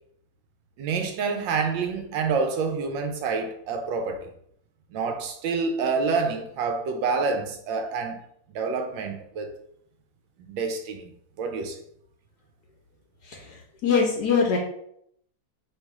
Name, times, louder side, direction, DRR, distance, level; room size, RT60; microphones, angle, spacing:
voice 1, 0.8-4.3 4.9-8.2 8.5-9.5 10.5-11.1 11.4-11.8, right 4 dB, 75° right, 1.2 m, -27 dB
voice 2, 13.2-14.6, left 5 dB, 65° left, 1.1 m, -23 dB
3.3 x 2.9 x 4.4 m
omnidirectional pair, 2.2 m